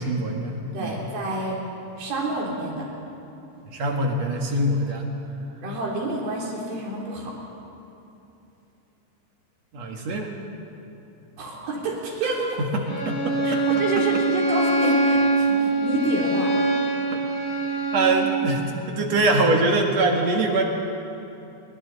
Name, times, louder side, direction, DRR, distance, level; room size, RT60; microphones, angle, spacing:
voice 1, 0.0-1.0 3.7-5.1 9.7-10.3 12.7-13.6 17.1-17.2 17.9-20.6, right 2 dB, 50° right, 1 dB, 2.6 m, -23 dB
voice 2, 0.7-1.6 2.0-2.9 5.6-7.3 11.4-12.5 13.4-16.5, right 2 dB, 70° right, -3 dB, 5.3 m, -28 dB
Bowed string instrument, 12.9-18.3, right 2 dB, 40° left, 7.5 m, -23 dB
29.0 x 22.5 x 4.1 m, 2.9 s
omnidirectional pair, 4.4 m